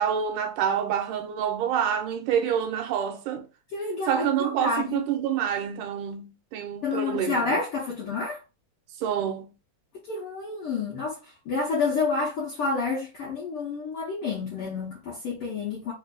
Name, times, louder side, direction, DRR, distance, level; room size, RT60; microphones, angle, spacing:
voice 1, 0.0-3.5 4.1-7.6 9.0-9.5, right 9 dB, 85° right, 2.1 m, -27 dB
voice 2, 3.7-5.0 6.8-8.4 10.1-15.9, left 4 dB, 70° left, 1.3 m, -29 dB
5.1 x 2.5 x 2.3 m
omnidirectional pair, 3.8 m